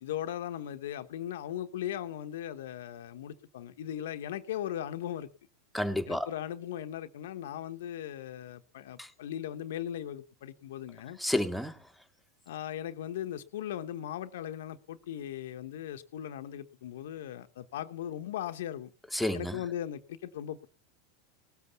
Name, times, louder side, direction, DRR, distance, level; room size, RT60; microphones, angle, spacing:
voice 1, 0.0-5.3 6.1-11.2 12.5-18.9 19.3-20.7, left 11 dB, 70° left, 1.1 m, -38 dB
voice 2, 5.7-6.3 9.0-9.1 11.2-11.8 19.1-19.6, left 1 dB, ahead, 1.9 m, -30 dB
19.0 x 8.3 x 6.8 m
hypercardioid pair, 95°, 0 cm